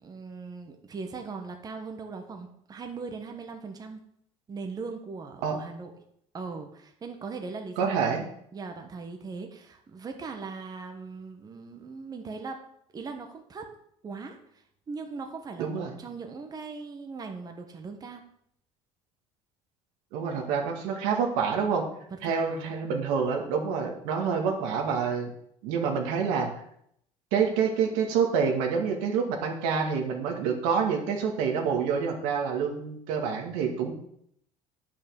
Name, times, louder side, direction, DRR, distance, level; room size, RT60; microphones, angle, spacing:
voice 1, 0.0-4.0 4.5-5.9 6.3-8.1 8.5-12.6 12.9-13.7 14.0-14.4 14.9-18.2 22.1-22.7, right 4 dB, 30° right, 4 dB, 1.2 m, -39 dB
voice 2, 7.8-8.2 15.6-15.9 20.1-21.8 22.2-25.3 25.6-26.5 27.3-34.0, right 6 dB, 85° right, 2 dB, 2.0 m, -27 dB
8.8 x 5.7 x 7.0 m, 0.71 s
cardioid pair, 115°, 14 cm